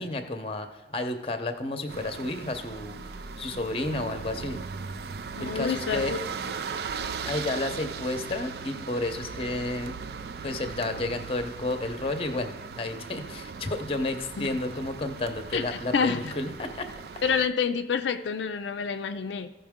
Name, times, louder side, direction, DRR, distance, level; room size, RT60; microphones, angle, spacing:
voice 1, 0.0-3.0 3.4-4.6 5.4-6.1 7.3-10.0 10.4-16.9, left 2 dB, 30° left, 7 dB, 0.7 m, -31 dB
sound 1, 1.9-17.5, right 5 dB, 60° right, 0.4 m, -38 dB
voice 2, 5.4-6.2 14.4-14.5 15.5-16.3 17.2-19.5, left 6 dB, 85° left, 7 dB, 0.4 m, -28 dB
15.0 x 5.5 x 3.6 m, 1.1 s
head